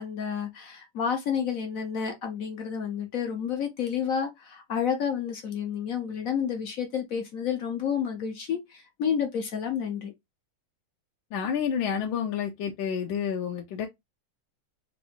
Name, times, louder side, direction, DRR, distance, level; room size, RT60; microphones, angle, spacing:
voice 1, 0.0-10.1, left 7 dB, 55° left, 1.0 m, -30 dB
voice 2, 11.3-13.9, left 7 dB, 75° left, 1.3 m, -29 dB
3.8 x 2.6 x 3.5 m
omnidirectional pair, 2.3 m